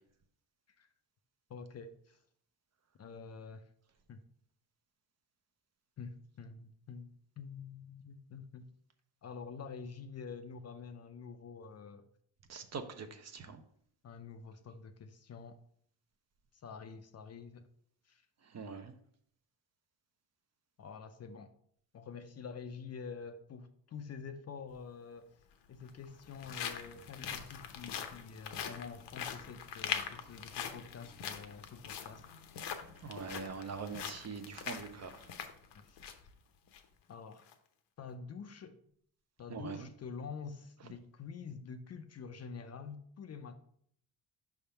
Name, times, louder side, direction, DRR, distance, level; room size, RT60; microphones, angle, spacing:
voice 1, 1.5-2.2 3.0-3.6 4.1-4.2 6.0-7.1 7.4-8.7 9.2-12.1 14.0-15.6 16.6-17.6 18.1-18.2 20.8-21.5 21.9-25.3 25.7-32.6 35.7-36.0 37.1-37.5 38.0-38.8 39.4-43.6, left 5 dB, 35° left, 0.5 m, -47 dB
voice 2, 12.5-13.6 18.5-18.9 33.0-35.3 39.5-39.9, right 5 dB, 40° right, 0.7 m, -43 dB
sound 1, 24.7-24.8 25.7-36.3 36.7-36.8 37.3-37.5, left 8 dB, 70° left, 0.9 m, -43 dB
5.6 x 3.5 x 5.5 m
cardioid pair, 110°, 43 cm